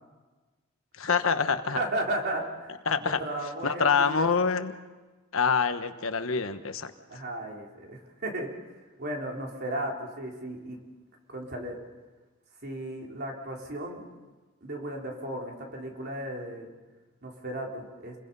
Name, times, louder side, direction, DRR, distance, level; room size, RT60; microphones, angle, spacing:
voice 1, 1.0-1.8 2.9-3.2 3.6-4.7 5.3-6.9, left 5 dB, 80° left, 9 dB, 1.2 m, -26 dB
voice 2, 1.8-2.7 3.2-4.3 7.1-8.5 9.0-10.8 11.3-11.8 12.6-14.1 14.6-16.7 17.2-18.2, right 1 dB, 50° right, 0 dB, 3.7 m, -35 dB
29.0 x 22.0 x 5.5 m, 1.3 s
head